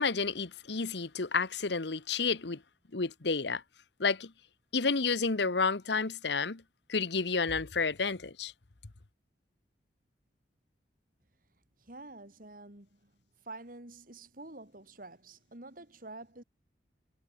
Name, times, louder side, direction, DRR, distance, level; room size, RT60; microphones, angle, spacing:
voice 1, 0.0-2.6 2.9-3.6 4.0-4.3 4.7-6.6 6.9-8.5, left 4 dB, 70° left, 1.1 m, -30 dB
voice 2, 11.8-13.1 13.4-16.4, right 2 dB, 50° right, 3.2 m, -48 dB
head